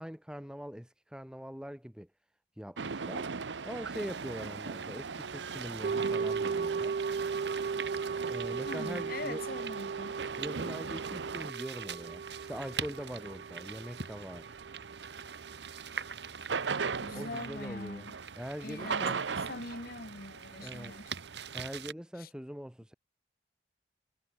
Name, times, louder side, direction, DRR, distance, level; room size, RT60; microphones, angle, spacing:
voice 1, 0.0-2.1 2.6-3.3 3.6-7.0 8.2-9.4 10.4-14.5 17.1-18.1 18.4-19.3 20.6-21.0 21.5-22.9, equal, 5° right, 1.5 m, -42 dB
sound 1, 2.8-11.5 12.0-21.7, right 5 dB, 90° right, 0.8 m, -40 dB
sound 2, 3.9-21.9, right 7 dB, 70° right, 5.7 m, -45 dB
sound 3, 5.8-16.1 16.4-16.5, right 5 dB, 55° right, 0.3 m, -37 dB
voice 2, 8.6-10.2 17.0-18.1 18.6-19.2 19.5-21.1 22.2-22.3, left 2 dB, 55° left, 1.9 m, -42 dB
head